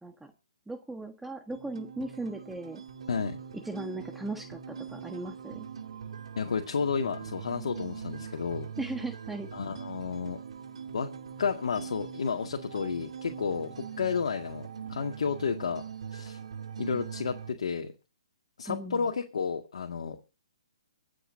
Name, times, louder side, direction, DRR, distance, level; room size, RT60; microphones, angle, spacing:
voice 1, 0.0-0.3 0.7-2.8 3.5-5.7 8.8-9.5 18.7-19.1, right 2 dB, 5° right, 5 dB, 1.3 m, -38 dB
sound 1, 1.5-17.5, right 7 dB, 75° right, 2.8 m, -42 dB
voice 2, 3.1-3.4 6.4-8.7 9.5-10.4 10.9-11.1 11.4-15.8 16.1-16.4 16.8-17.9 18.6-20.2, left 6 dB, 75° left, 3 dB, 2.1 m, -31 dB
25.5 x 8.6 x 2.7 m, 0.31 s
hypercardioid pair, 145°, 3 cm